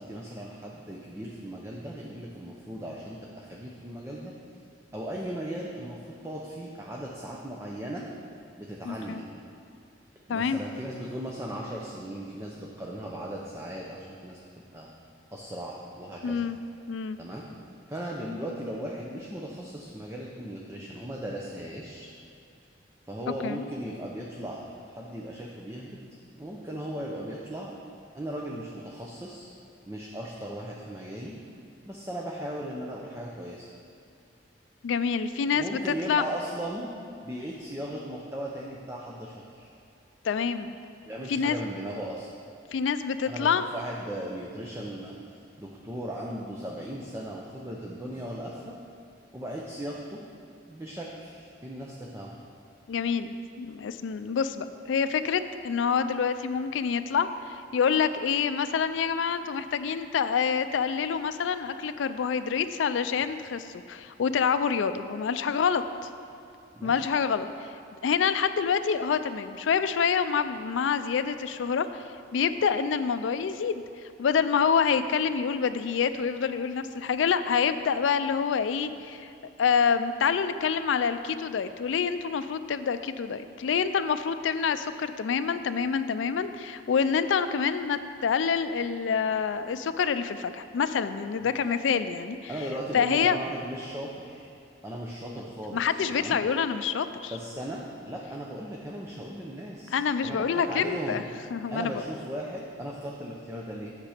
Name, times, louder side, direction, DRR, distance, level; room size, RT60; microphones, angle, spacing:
voice 1, 0.0-4.3 4.9-8.0 8.6-9.4 10.3-14.4 14.7-14.9 15.3-16.4 17.2-17.5 17.9-22.1 23.1-26.0 26.4-27.7 28.1-29.5 29.9-31.3 31.8-33.7 35.5-36.9 37.2-39.7 41.1-42.3 43.3-45.2 45.6-48.8 49.3-50.2 50.7-52.3 66.7-67.0 91.5-91.6 92.5-94.5 94.8-96.4 97.3-101.2 101.7-103.9, right 1 dB, 15° right, -2 dB, 0.7 m, -37 dB
voice 2, 8.8-9.2 10.3-10.6 16.2-16.6 16.9-17.2 23.4-23.6 34.8-36.2 40.2-40.7 41.3-41.6 42.7-43.6 52.9-66.1 66.8-67.7 68.0-72.0 72.3-73.8 74.2-79.3 79.6-92.5 92.9-93.4 95.7-97.3 99.9-101.2 101.5-102.0, left 6 dB, 90° left, 11 dB, 0.4 m, -27 dB
8.9 x 6.7 x 5.0 m, 2.6 s
head